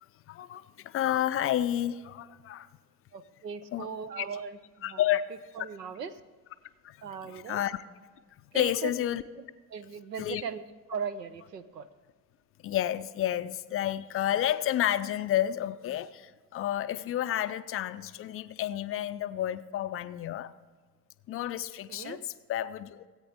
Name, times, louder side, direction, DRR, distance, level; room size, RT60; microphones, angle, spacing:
voice 1, 0.3-2.7 3.7-3.9 4.2-4.4 4.8-5.2 6.8-7.8 8.5-9.2 10.2-10.4 12.6-20.5 21.3-23.0, left 12 dB, 30° left, 13 dB, 0.4 m, -30 dB
voice 2, 3.1-4.5 4.9-5.0 5.6-6.1 7.0-7.6 8.5-8.9 9.7-10.6 10.9-11.9 21.9-22.2, right 6 dB, 85° right, 12 dB, 0.7 m, -38 dB
16.5 x 8.5 x 3.5 m, 1.5 s
figure-of-eight pair, 60°, 47 cm